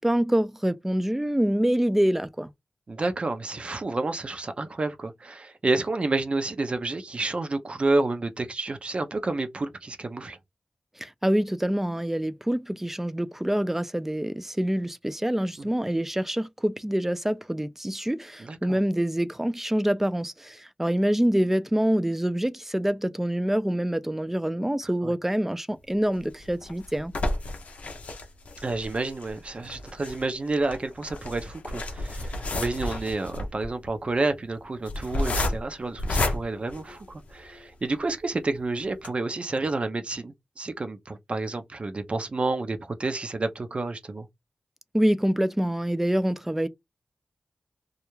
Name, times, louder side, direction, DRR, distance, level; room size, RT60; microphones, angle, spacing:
voice 1, 0.0-2.5 11.0-27.1 44.9-46.7, right 1 dB, 15° right, 0.4 m, -26 dB
voice 2, 2.9-10.4 15.6-15.7 18.4-18.8 25.0-25.1 28.6-44.3, right 3 dB, 55° right, 0.6 m, -30 dB
sound 1, 26.1-37.5 38.1-38.2 38.4-38.5 38.9-39.1, left 2 dB, 90° left, 0.5 m, -32 dB
2.4 x 2.1 x 3.0 m
cardioid pair, 45°, 2 cm